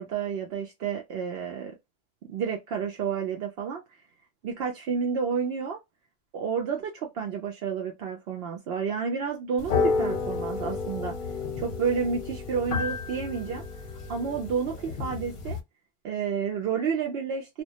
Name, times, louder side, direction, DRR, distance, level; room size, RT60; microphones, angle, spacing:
voice 1, 0.0-1.7 2.3-3.8 4.4-5.8 6.3-11.1 11.6-13.6 14.1-15.6 16.0-17.6, right 6 dB, 70° right, 0.8 m, -30 dB
sound 1, 9.6-15.6, left 4 dB, 55° left, 0.7 m, -31 dB
2.2 x 2.1 x 2.7 m
omnidirectional pair, 1.1 m